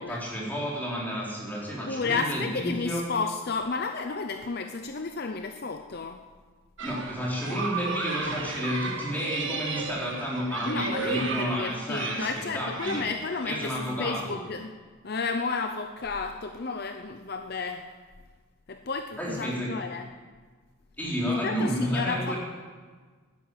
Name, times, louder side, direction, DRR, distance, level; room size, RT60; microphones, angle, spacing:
voice 1, 0.0-3.0 6.8-13.0 13.4-14.4 19.2-19.7 21.0-22.4, equal, 10° left, -5 dB, 3.9 m, -31 dB
voice 2, 1.9-6.3 10.7-14.8 15.0-17.9 18.7-20.1 21.3-22.3, left 4 dB, 45° left, 6 dB, 0.6 m, -32 dB
sound 1, 6.8-13.9, right 4 dB, 60° right, 1.7 m, -35 dB
13.0 x 10.5 x 9.1 m, 1.5 s
head